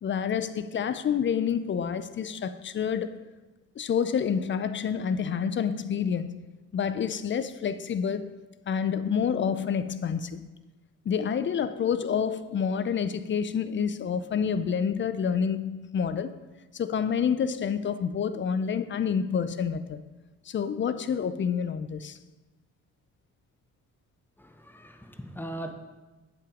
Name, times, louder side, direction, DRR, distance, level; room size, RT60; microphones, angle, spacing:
voice 1, 0.0-3.2 3.8-6.5 6.7-8.4 8.7-10.4 11.1-16.3 16.7-20.0 20.5-22.2, left 7 dB, 40° left, 0.5 m, -28 dB
voice 2, 24.4-25.7, right 1 dB, 5° left, 0.9 m, -39 dB
8.6 x 5.8 x 5.0 m
cardioid pair, 90°, 30 cm